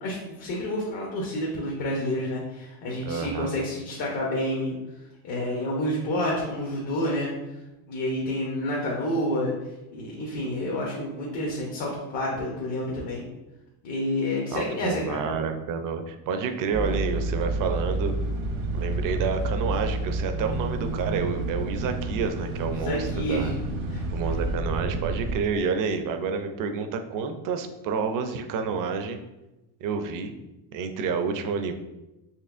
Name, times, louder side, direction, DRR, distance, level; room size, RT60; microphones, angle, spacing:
voice 1, 0.0-4.7 5.2-7.3 7.9-9.5 9.9-13.2 13.8-15.3 22.7-23.5 23.9-24.0, left 1 dB, 55° left, -3 dB, 1.0 m, -29 dB
voice 2, 3.0-3.5 14.5-18.1 18.7-23.5 24.1-29.2 29.8-30.3 30.7-31.7, right 5 dB, 45° right, 7 dB, 0.5 m, -29 dB
sound 1, 16.7-25.4, right 2 dB, 80° right, 0.9 m, -29 dB
4.3 x 3.0 x 2.5 m, 0.99 s
cardioid pair, 115°, 47 cm